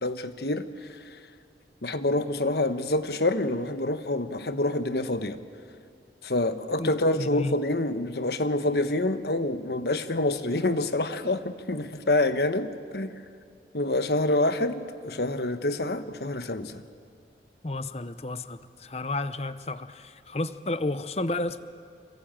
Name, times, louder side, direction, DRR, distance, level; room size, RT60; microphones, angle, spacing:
voice 1, 0.0-1.0 1.8-5.4 6.2-13.1 13.7-16.8, left 2 dB, 65° left, 10 dB, 1.2 m, -27 dB
voice 2, 6.8-7.6 17.6-21.6, left 2 dB, 35° left, 13 dB, 0.8 m, -32 dB
27.0 x 22.5 x 8.9 m, 2.3 s
head